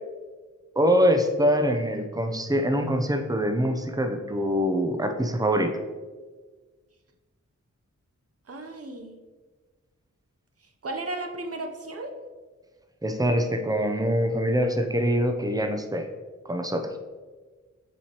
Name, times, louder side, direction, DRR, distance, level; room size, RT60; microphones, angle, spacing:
voice 1, 0.8-5.7 13.0-16.1 16.4-17.0, equal, 10° right, 5 dB, 0.6 m, -24 dB
voice 2, 8.5-9.2 10.8-12.1, right 2 dB, 50° right, 4 dB, 0.8 m, -34 dB
7.0 x 4.8 x 3.0 m, 1.4 s
wide cardioid pair, 85°, 30 cm